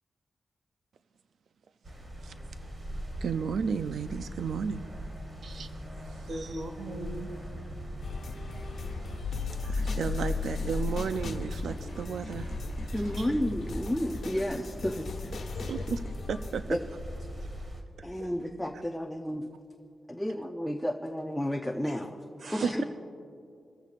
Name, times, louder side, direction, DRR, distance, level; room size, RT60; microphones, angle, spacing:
sound 1, 1.8-17.8, right 1 dB, 35° right, 1.6 m, -40 dB
voice 1, 3.2-4.9 5.6-5.7 6.0-6.3 8.4-8.6 9.6-12.5 15.6-16.8 18.2-18.3 22.6-22.8, right 6 dB, 90° right, 11 dB, 0.4 m, -33 dB
voice 2, 6.3-7.3 13.2-13.3 14.3-14.5 15.7-15.8 22.4-22.7, right 1 dB, 60° right, 4 dB, 1.4 m, -39 dB
sound 2, 8.0-16.6, left 4 dB, 70° left, 1.2 m, -36 dB
voice 3, 12.9-15.1 15.6-15.7 16.7-16.8 18.0-19.5 20.1-22.2 22.5-22.8, equal, 5° left, 2 dB, 0.5 m, -32 dB
23.0 x 14.5 x 2.5 m, 2.4 s
wide cardioid pair, 180°, 0 cm